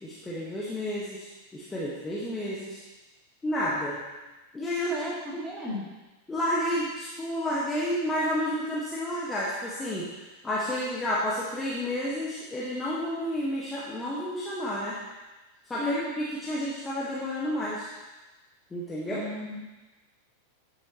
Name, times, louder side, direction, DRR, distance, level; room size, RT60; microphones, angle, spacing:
voice 1, 0.0-2.8 3.4-4.0 4.5-4.9 5.3-5.4 6.3-10.0 10.4-15.0 15.6-17.9 18.7-19.2, equal, 15° left, -7 dB, 1.3 m, -30 dB
voice 2, 4.8-5.9 15.8-16.0 19.1-19.6, left 2 dB, 10° right, -6 dB, 2.7 m, -34 dB
10.0 x 6.3 x 2.9 m, 1.2 s
figure-of-eight pair, 90°, 0 cm